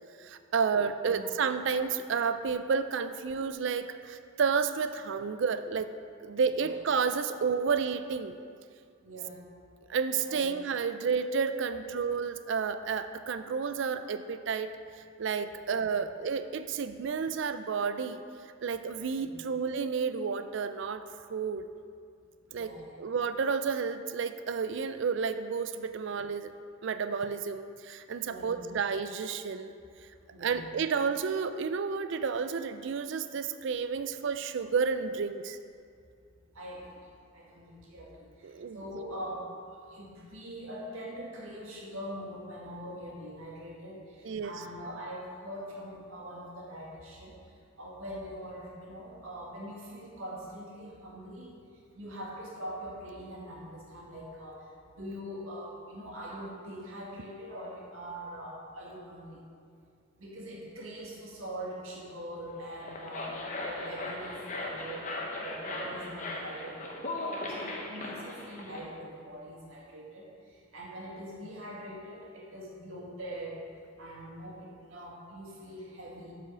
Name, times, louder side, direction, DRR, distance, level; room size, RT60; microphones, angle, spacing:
voice 1, 0.2-5.9 6.2-8.4 9.9-14.7 15.2-18.2 18.6-21.0 21.3-21.7 22.5-22.7 23.0-26.5 26.8-29.7 30.4-35.6 38.4-38.8 44.2-44.5, right 5 dB, 60° right, 11 dB, 0.4 m, -31 dB
voice 2, 9.0-9.4 10.3-10.7 11.5-11.7 15.9-16.0 19.1-19.4 22.5-23.0 28.3-28.6 30.3-30.7 36.5-36.9 37.3-47.3 47.8-51.5 51.9-54.6 54.9-59.4 60.2-65.1 65.4-73.6 74.0-76.3, equal, 75° right, -4 dB, 1.9 m, -43 dB
sound 1, 62.6-68.8, left 2 dB, 35° left, 0.9 m, -38 dB
8.0 x 4.9 x 6.1 m, 2.3 s
head